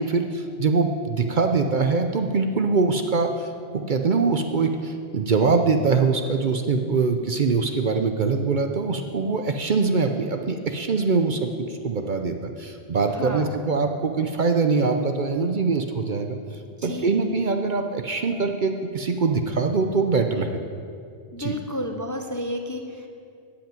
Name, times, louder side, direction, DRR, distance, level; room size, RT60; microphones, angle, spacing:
voice 1, 0.0-16.4 16.8-20.5 21.4-21.5, right 4 dB, 50° right, 5 dB, 0.7 m, -23 dB
voice 2, 13.1-13.5 16.8-17.3 21.3-23.1, left 1 dB, 20° left, 4 dB, 0.6 m, -31 dB
13.0 x 5.8 x 8.9 m, 2.4 s
omnidirectional pair, 1.2 m